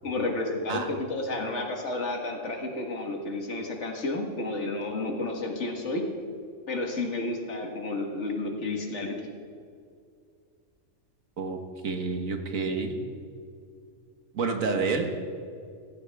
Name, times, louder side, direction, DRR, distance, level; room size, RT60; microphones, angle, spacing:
voice 1, 0.0-6.0 6.7-9.1, left 2 dB, 60° left, 2 dB, 1.9 m, -31 dB
voice 2, 11.8-12.9 14.3-15.1, right 4 dB, 75° right, 4 dB, 1.8 m, -28 dB
16.0 x 15.5 x 3.5 m, 2.3 s
omnidirectional pair, 1.4 m